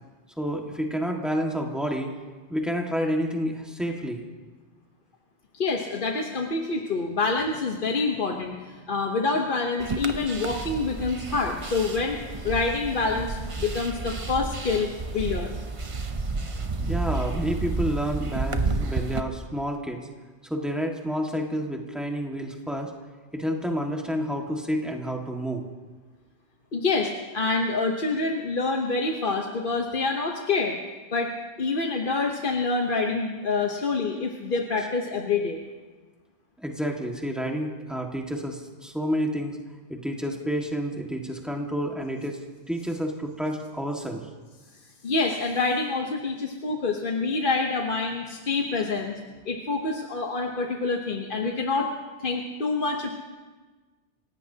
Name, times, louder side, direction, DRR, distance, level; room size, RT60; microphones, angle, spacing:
voice 1, 0.4-2.1 2.5-4.3 16.8-20.0 20.4-22.9 23.3-25.6 34.8-34.9 36.6-39.6 39.9-42.4 42.7-44.3, equal, ahead, 0 dB, 1.7 m, -29 dB
voice 2, 5.5-12.2 12.4-14.9 15.1-15.5 26.7-30.8 31.1-31.3 31.6-35.6 45.0-49.2 49.5-51.9 52.2-53.1, left 3 dB, 50° left, 1 dB, 1.2 m, -26 dB
sound 1, 9.8-19.2, right 3 dB, 30° right, 0.7 m, -31 dB
28.0 x 16.5 x 2.8 m, 1.3 s
omnidirectional pair, 1.2 m